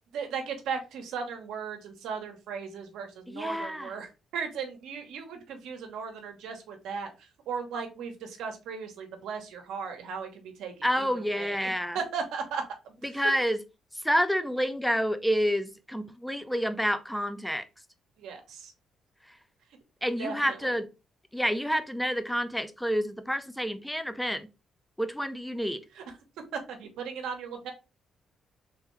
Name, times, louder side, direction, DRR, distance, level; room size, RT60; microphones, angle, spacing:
voice 1, 0.1-13.3 18.2-18.7 20.2-20.7 25.9-26.0 26.5-27.7, right 6 dB, 85° right, 1.0 m, -37 dB
voice 2, 3.3-3.9 10.8-12.0 13.0-13.6 14.0-17.6 20.0-20.9 21.3-24.5 25.0-25.8, equal, ahead, 0.5 m, -28 dB
3.4 x 3.4 x 3.1 m
cardioid pair, 90°, 0 cm